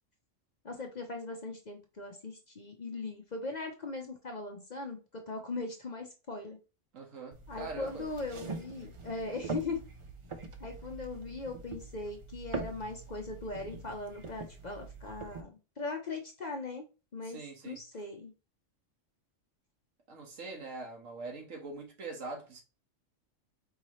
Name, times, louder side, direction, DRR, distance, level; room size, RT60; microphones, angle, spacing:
voice 1, 0.6-6.6 7.5-9.8 10.6-16.9 17.1-17.4 17.6-18.3, left 3 dB, 45° left, 0.7 m, -39 dB
voice 2, 6.9-8.1 17.2-17.8 20.1-22.6, right 3 dB, 80° right, 1.6 m, -43 dB
sound 1, 7.3-15.4, right 4 dB, 55° right, 0.3 m, -43 dB
4.7 x 2.9 x 3.0 m
omnidirectional pair, 1.3 m